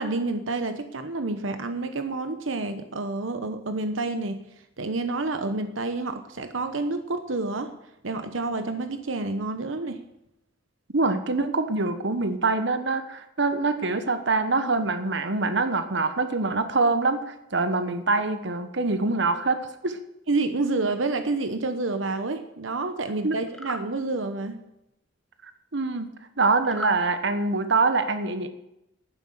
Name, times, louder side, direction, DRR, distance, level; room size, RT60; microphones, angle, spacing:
voice 1, 0.0-4.4 4.8-7.7 8.0-10.0 20.3-24.6, right 3 dB, 90° right, 8 dB, 1.0 m, -29 dB
voice 2, 10.9-20.0 23.2-23.4 25.7-26.1 26.4-28.5, right 3 dB, 65° right, 9 dB, 1.3 m, -24 dB
sound 1, 23.5-23.9 26.6-27.0, left 1 dB, 5° left, 1.2 m, -36 dB
11.5 x 9.7 x 6.8 m, 0.85 s
head